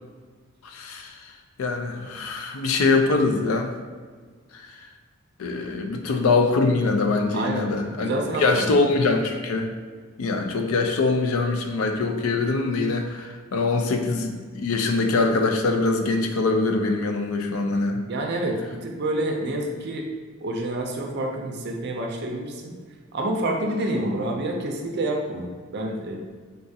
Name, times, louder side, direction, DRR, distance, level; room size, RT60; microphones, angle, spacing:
voice 1, 0.6-1.2 1.6-3.7 4.5-4.6 5.4-9.7 10.2-18.0, left 3 dB, 75° left, 5 dB, 0.4 m, -23 dB
voice 2, 7.3-8.7 18.0-20.1 20.4-22.7 23.1-26.2, right 1 dB, 50° right, 2 dB, 0.5 m, -28 dB
3.9 x 2.4 x 2.7 m, 1.5 s
head